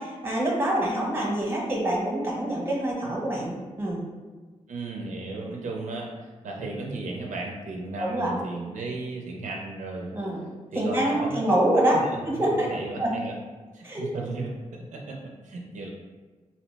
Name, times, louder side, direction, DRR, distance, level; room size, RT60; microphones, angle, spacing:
voice 1, 0.0-4.0 8.0-8.3 10.1-10.4 10.7-12.0 12.2-12.7 13.0-13.1 13.8-14.0, right 1 dB, 20° right, -3 dB, 0.8 m, -25 dB
voice 2, 4.7-10.2 10.7-11.4 11.9-13.3 13.7-15.9, right 2 dB, 85° right, 0 dB, 0.4 m, -35 dB
2.8 x 2.0 x 3.2 m, 1.3 s
cardioid pair, 85°, 12 cm